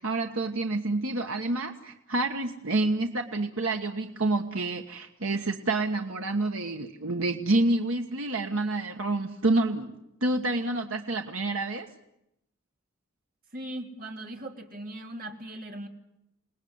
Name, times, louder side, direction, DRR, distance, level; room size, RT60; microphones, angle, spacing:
voice 1, 0.0-11.9, right 2 dB, 70° right, 4 dB, 1.4 m, -28 dB
voice 2, 13.5-15.9, right 1 dB, 45° right, 3 dB, 2.9 m, -39 dB
28.5 x 19.0 x 9.5 m, 0.85 s
head